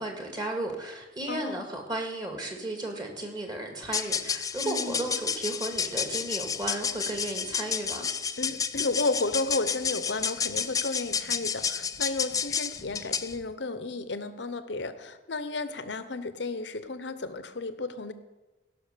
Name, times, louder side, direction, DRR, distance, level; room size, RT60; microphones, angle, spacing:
voice 1, 0.0-8.1, right 2 dB, 20° right, 3 dB, 2.0 m, -34 dB
voice 2, 1.3-1.6 4.6-5.1 8.4-18.1, left 3 dB, 70° left, 12 dB, 0.8 m, -33 dB
sound 1, 3.8-13.4, left 7 dB, 20° left, 0.4 m, -31 dB
16.5 x 6.1 x 6.7 m, 1.1 s
head